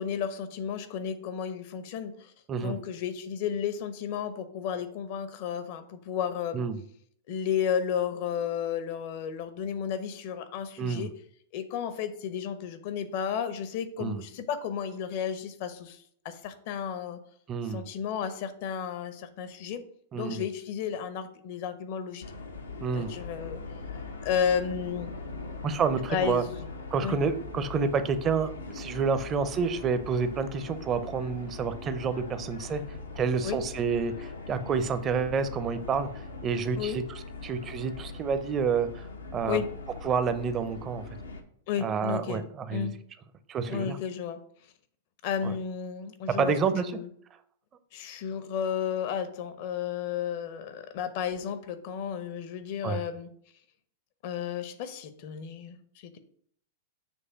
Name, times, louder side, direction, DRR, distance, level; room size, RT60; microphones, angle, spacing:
voice 1, 0.0-2.3 2.6-6.6 7.3-11.1 11.5-16.0 16.2-17.2 17.7-19.8 20.1-22.2 22.9-23.6 24.2-25.1 26.1-26.5 27.0-27.2 33.4-33.6 36.8-37.0 39.4-39.7 41.7-42.4 42.7-42.9 43.7-44.4 45.2-46.6 46.9-47.1 47.9-53.3 54.2-56.2, left 8 dB, 50° left, 10 dB, 0.8 m, -32 dB
voice 2, 10.8-11.1 14.0-14.2 17.5-17.8 20.1-20.4 22.8-23.1 25.6-26.4 26.9-32.8 33.2-36.1 36.4-37.0 37.4-38.9 39.3-39.6 40.0-41.0 41.8-42.9 43.5-44.0 45.4-45.5 46.4-46.9 52.8-53.0, right 5 dB, 30° right, 11 dB, 0.6 m, -29 dB
sound 1, 22.2-41.4, left 3 dB, 85° left, 0.9 m, -41 dB
7.2 x 3.3 x 5.6 m, 0.64 s
figure-of-eight pair, 100°, 0 cm